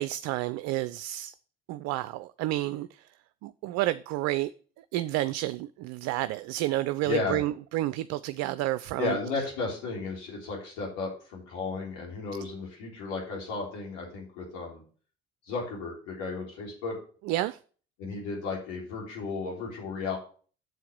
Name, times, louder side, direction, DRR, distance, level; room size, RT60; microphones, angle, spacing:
voice 1, 0.0-1.3 1.7-2.9 3.4-4.5 4.9-9.2 17.3-17.6, right 16 dB, 60° right, 0.4 m, -30 dB
voice 2, 7.0-7.4 9.0-14.8 15.5-17.0 18.0-20.2, left 4 dB, 70° left, 3.5 m, -34 dB
7.8 x 4.6 x 6.8 m
hypercardioid pair, 55°, 31 cm